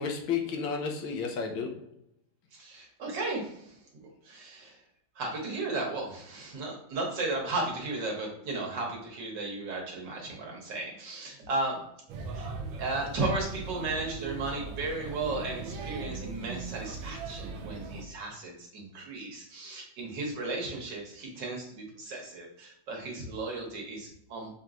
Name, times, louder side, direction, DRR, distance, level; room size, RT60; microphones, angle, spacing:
voice 1, 0.0-2.0, left 6 dB, 90° left, 2 dB, 1.5 m, -32 dB
voice 2, 2.5-3.7 4.2-4.8 5.2-11.8 12.3-12.5 12.8-24.5, right 2 dB, 65° right, 0 dB, 1.6 m, -35 dB
Male speech man speaking / Child speech kid speaking / Chatter, 12.1-18.0, right 4 dB, 85° right, 1.4 m, -39 dB
5.4 x 2.9 x 2.4 m, 0.73 s
omnidirectional pair, 2.2 m